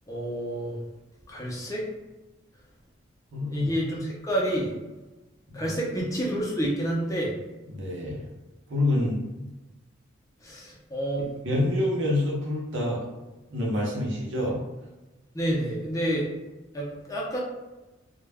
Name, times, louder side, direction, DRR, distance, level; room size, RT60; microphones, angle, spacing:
voice 1, 0.1-0.8 1.3-1.9 3.5-4.7 5.5-7.3 10.4-11.3 15.3-16.3 16.7-17.4, right 1 dB, 15° left, -4 dB, 0.5 m, -29 dB
voice 2, 3.3-3.7 5.5-5.7 7.7-8.2 8.7-9.3 11.4-13.1 13.5-14.6, left 1 dB, 65° right, -3 dB, 0.7 m, -27 dB
2.2 x 2.2 x 3.4 m, 1.1 s
head